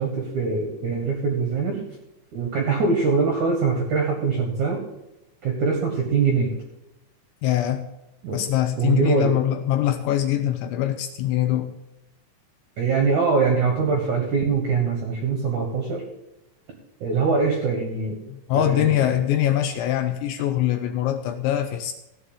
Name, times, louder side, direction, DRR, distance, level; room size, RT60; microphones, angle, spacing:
voice 1, 0.0-1.9 2.3-4.8 5.4-6.5 8.2-8.4 8.8-9.3 12.8-16.1 17.0-18.2 18.5-19.2, right 4 dB, 65° right, 2 dB, 1.9 m, -23 dB
voice 2, 7.4-7.9 8.3-11.7 18.3-21.9, left 12 dB, 85° left, 8 dB, 2.7 m, -23 dB
15.0 x 5.1 x 7.1 m, 0.93 s
omnidirectional pair, 5.6 m